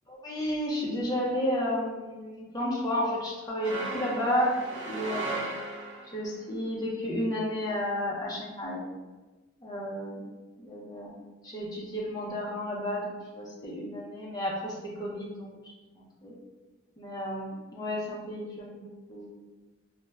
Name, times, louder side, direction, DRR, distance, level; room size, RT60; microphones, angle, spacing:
voice 1, 0.1-4.5 4.9-5.5 6.1-8.8 9.6-10.2 10.6-11.2 11.4-15.5 15.9-16.3 17.0-18.8 19.1-19.3, equal, 20° left, -4 dB, 0.5 m, -32 dB
sound 1, 3.6-6.2, right 2 dB, 60° right, 0.6 m, -36 dB
2.3 x 2.1 x 3.1 m, 1.2 s
head